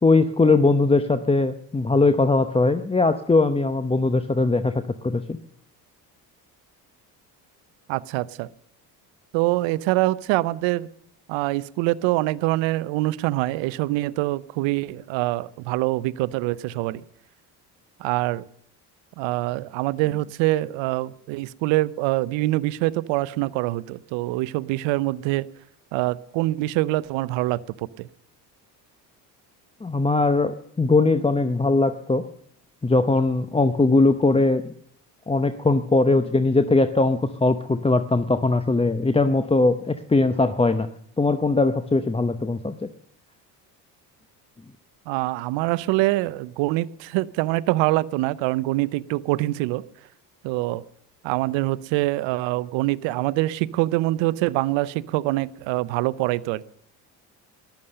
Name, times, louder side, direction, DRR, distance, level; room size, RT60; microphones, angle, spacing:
voice 1, 0.0-5.4 29.8-32.2 32.8-34.6 35.3-40.9 41.2-42.9, left 3 dB, 10° left, 11 dB, 0.7 m, -20 dB
voice 2, 7.9-8.5 9.3-10.9 11.3-17.0 18.0-18.4 19.2-25.5 25.9-28.1 45.1-49.8 50.4-50.8 51.2-56.6, right 18 dB, 65° right, 20 dB, 0.7 m, -24 dB
14.0 x 11.5 x 6.7 m, 0.67 s
hypercardioid pair, 55°, 49 cm